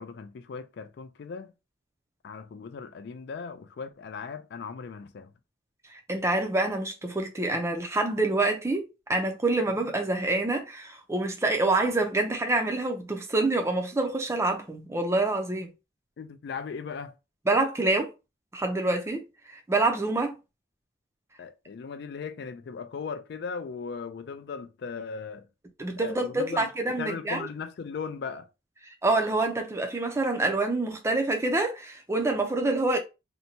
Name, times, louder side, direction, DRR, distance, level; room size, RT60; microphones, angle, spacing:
voice 1, 0.0-1.5 2.2-5.3 9.8-9.9 16.2-17.1 21.4-25.5 26.0-28.5, left 5 dB, 55° left, 0.3 m, -38 dB
voice 2, 5.9-8.8 9.1-15.7 17.5-18.1 18.5-20.4 25.8-27.5 29.0-33.0, right 2 dB, 15° right, 0.4 m, -26 dB
2.8 x 2.1 x 2.7 m
head